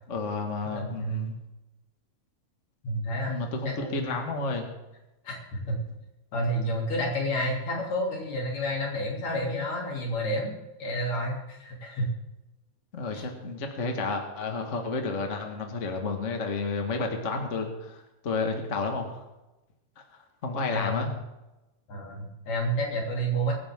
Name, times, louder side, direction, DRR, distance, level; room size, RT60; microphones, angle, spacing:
voice 1, 0.1-1.3 3.3-4.7 12.9-19.2 20.4-21.1, left 3 dB, 30° left, 3 dB, 1.5 m, -31 dB
voice 2, 0.6-1.3 2.8-4.2 5.2-5.8 6.3-12.1 13.1-13.2 20.7-21.1 21.9-23.5, equal, 65° left, -2 dB, 4.5 m, -30 dB
24.5 x 10.0 x 3.7 m, 1.0 s
omnidirectional pair, 3.3 m